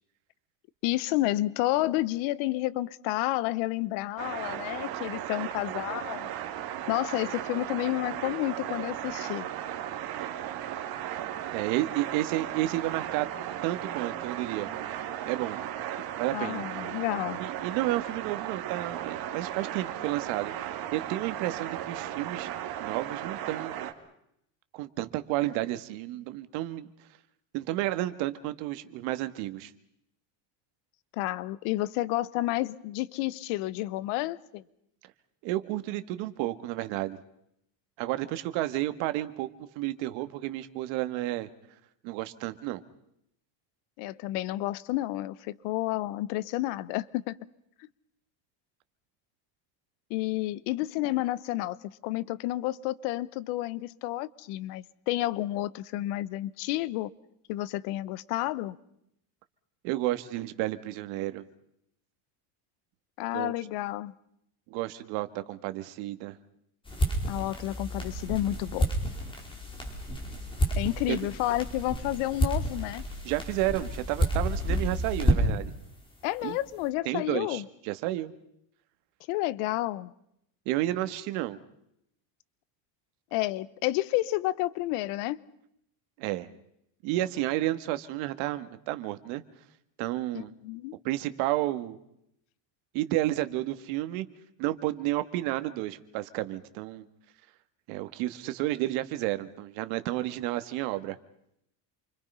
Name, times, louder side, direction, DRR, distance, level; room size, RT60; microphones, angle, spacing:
voice 1, 0.8-6.3 6.9-9.5 16.3-17.4 31.1-34.6 44.0-47.4 50.1-57.1 57.5-58.8 63.2-64.1 67.3-68.9 70.8-73.0 76.2-77.6 79.3-80.1 83.3-85.4 90.3-91.0, left 16 dB, 90° left, 19 dB, 1.1 m, -30 dB
sound 1, 4.2-23.9, right 11 dB, 50° right, 2.3 m, -36 dB
voice 2, 11.5-13.3 13.6-14.7 15.3-15.6 16.2-16.6 17.4-22.5 22.8-23.8 24.7-26.9 27.5-29.7 35.4-37.2 38.0-39.5 39.8-41.5 42.0-42.8 59.8-61.4 63.3-63.5 64.7-66.4 71.1-71.2 73.2-75.7 76.4-76.6 77.1-78.3 80.7-81.6 86.2-86.5 87.0-89.4 90.0-90.5 91.0-92.0 92.9-94.3 94.6-97.0 97.9-101.2, right 16 dB, 75° right, 11 dB, 1.9 m, -31 dB
sound 2, 66.9-75.7, equal, 10° left, 4.7 m, -30 dB
28.5 x 25.0 x 5.6 m, 0.77 s
cardioid pair, 170°, 47 cm